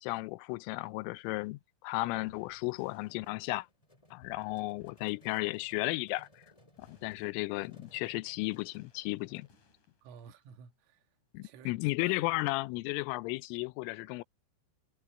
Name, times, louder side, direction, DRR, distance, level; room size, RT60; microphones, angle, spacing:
voice 1, 0.0-3.7 4.1-6.4 6.8-9.5 11.3-14.2, left 22 dB, 90° left, 3.2 m, -34 dB
sound 1, 1.4-1.6 2.1-6.2 6.8-12.0, left 5 dB, 40° left, 5.2 m, -66 dB
sound 2, 2.5-9.5, left 1 dB, 10° left, 2.5 m, -62 dB
voice 2, 10.0-11.1 11.4-12.4, right 7 dB, 85° right, 4.1 m, -53 dB
omnidirectional pair, 5.6 m